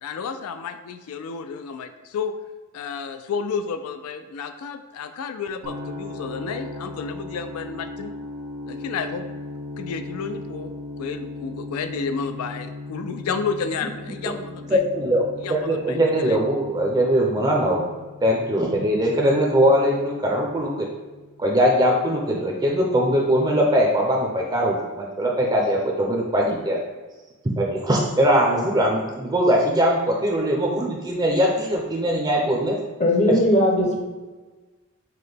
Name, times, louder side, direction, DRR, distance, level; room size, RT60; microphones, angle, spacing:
voice 1, 0.0-2.3 2.7-8.1 8.7-9.3 9.8-14.8 15.4-16.4, left 5 dB, 90° left, 8 dB, 0.3 m, -31 dB
sound 1, 5.6-21.6, left 2 dB, 75° right, 0.6 m, -38 dB
voice 2, 14.7-15.2 15.5-17.8 18.2-20.7 21.4-26.8 27.6-32.8, equal, 20° right, -1 dB, 0.5 m, -21 dB
voice 3, 33.0-34.0, left 1 dB, 30° left, 0 dB, 0.6 m, -18 dB
5.8 x 2.1 x 3.3 m, 1.2 s
head